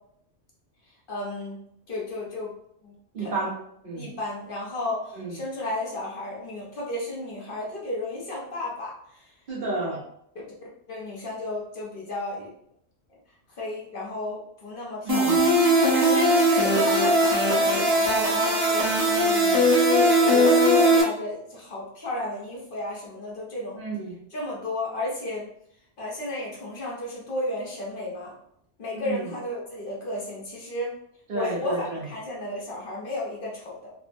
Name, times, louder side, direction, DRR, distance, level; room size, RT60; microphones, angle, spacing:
voice 1, 1.1-1.6 1.9-2.5 2.8-3.5 3.9-9.3 9.8-10.0 10.9-12.5 13.6-15.5 15.9-23.8 24.3-25.5 26.0-28.3 28.8-30.9 31.3-33.9, left 1 dB, 55° left, -4 dB, 0.9 m, -33 dB
voice 2, 3.1-4.1 5.1-5.3 9.5-10.0 15.0-15.4 23.7-24.1 29.0-29.3 31.3-32.1, right 3 dB, 55° right, -4 dB, 0.7 m, -31 dB
sound 1, 15.1-21.0, equal, 20° right, 0.8 m, -20 dB
3.3 x 2.0 x 2.5 m, 0.71 s
omnidirectional pair, 1.2 m